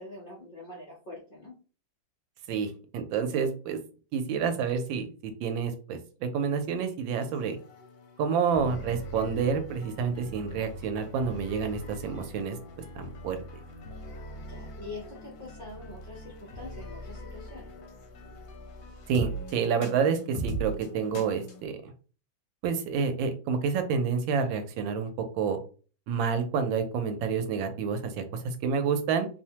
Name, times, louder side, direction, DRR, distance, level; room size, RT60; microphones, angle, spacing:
voice 1, 0.0-1.5 14.3-17.7, left 2 dB, 85° left, -4 dB, 0.4 m, -44 dB
voice 2, 2.5-3.8 4.1-7.6 8.2-12.6 13.0-13.4 19.1-21.9 22.6-25.1 25.3-25.6 26.1-29.3, right 6 dB, 80° right, 8 dB, 1.3 m, -29 dB
sound 1, 7.2-21.7, right 1 dB, 70° left, 0.9 m, -41 dB
3.1 x 2.1 x 2.8 m, 0.38 s
omnidirectional pair, 2.1 m